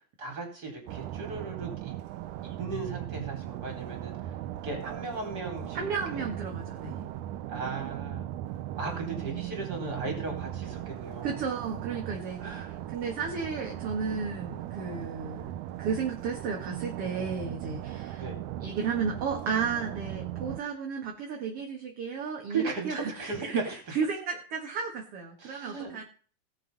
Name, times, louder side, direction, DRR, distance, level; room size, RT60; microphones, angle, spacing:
voice 1, 0.2-1.9 2.4-4.1 4.6-6.3 7.5-8.3 8.8-11.4 12.4-12.7 18.2-18.4 22.5-24.0 25.4-26.0, right 3 dB, 30° right, 2 dB, 4.3 m, -36 dB
sound 1, 0.9-20.6, right 13 dB, 85° right, 2.3 m, -38 dB
voice 2, 5.7-7.1 11.2-12.6 12.9-15.5 15.8-18.2 18.6-26.0, right 5 dB, 55° right, 1 dB, 2.6 m, -33 dB
17.0 x 7.9 x 5.4 m, 0.41 s
omnidirectional pair, 3.4 m